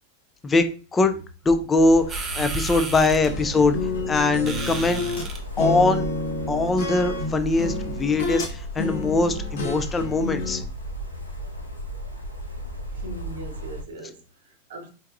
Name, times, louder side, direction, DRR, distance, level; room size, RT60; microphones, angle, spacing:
voice 1, 0.4-1.2 1.5-3.8 4.1-5.0 5.6-6.0 6.5-10.6, left 3 dB, 15° left, 0.4 m, -22 dB
sound 1, 1.8-13.8, right 1 dB, 90° left, 0.4 m, -35 dB
sound 2, 2.1-7.7, right 3 dB, 20° right, 0.8 m, -37 dB
sound 3, 3.2-5.3 5.6-8.5 8.8-10.6, left 3 dB, 60° left, 0.8 m, -30 dB
voice 2, 12.9-14.9, right 1 dB, 60° right, 0.8 m, -40 dB
4.5 x 2.7 x 2.3 m
figure-of-eight pair, 90°, 0 cm